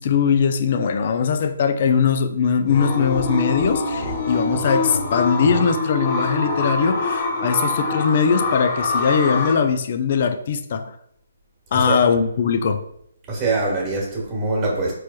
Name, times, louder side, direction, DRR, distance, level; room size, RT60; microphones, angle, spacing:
voice 1, 0.0-10.9 11.7-12.8, left 6 dB, 45° left, 7 dB, 0.4 m, -20 dB
sound 1, 2.7-9.5, left 2 dB, 25° left, 1.0 m, -24 dB
voice 2, 13.3-14.9, right 3 dB, 20° right, -3 dB, 1.4 m, -23 dB
4.5 x 3.1 x 2.2 m, 0.72 s
hypercardioid pair, 155°, 0 cm